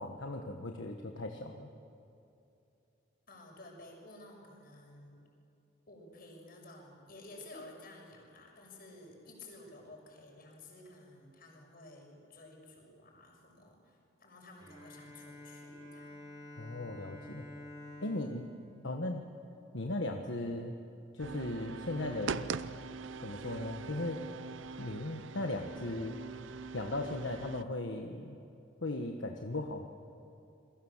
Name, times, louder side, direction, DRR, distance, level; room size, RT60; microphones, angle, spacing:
voice 1, 0.0-1.7 16.6-17.5 18.0-18.5 18.8-19.2 19.7-20.8 21.1-22.5 23.2-24.3 24.8-26.2 26.7-28.4 28.8-29.9, left 2 dB, 70° left, 3 dB, 1.4 m, -37 dB
voice 2, 3.3-5.2 5.9-16.4 18.1-18.5, left 2 dB, 50° left, 0 dB, 6.4 m, -53 dB
Bowed string instrument, 14.6-20.1, left 1 dB, 20° right, 5.2 m, -51 dB
sound 1, 21.2-27.6, right 5 dB, 75° right, 0.7 m, -42 dB
28.0 x 22.0 x 7.4 m, 2.8 s
head